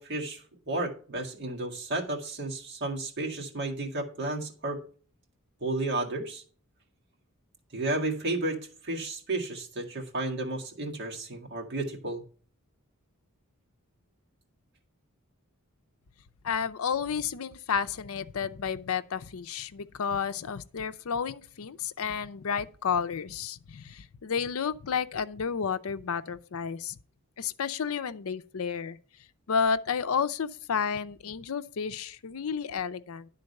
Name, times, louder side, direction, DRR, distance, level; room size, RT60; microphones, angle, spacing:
voice 1, 0.0-4.8 5.6-6.4 7.7-12.2, right 2 dB, 50° right, 1.9 m, -32 dB
voice 2, 16.4-27.0 27.4-29.0 29.5-33.3, left 6 dB, 75° left, 0.5 m, -31 dB
11.0 x 3.9 x 6.5 m
head